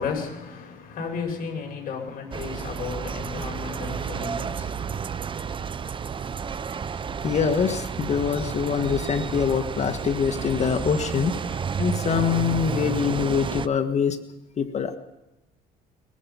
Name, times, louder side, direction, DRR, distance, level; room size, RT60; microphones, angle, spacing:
voice 1, 0.0-5.0, left 5 dB, 60° left, 6.2 m, -33 dB
sound 1, 2.3-13.7, right 6 dB, 30° right, 0.7 m, -31 dB
voice 2, 7.2-14.2 14.6-15.0, left 7 dB, 40° left, 1.7 m, -24 dB
21.5 x 21.0 x 5.7 m
cardioid pair, 110°, 17 cm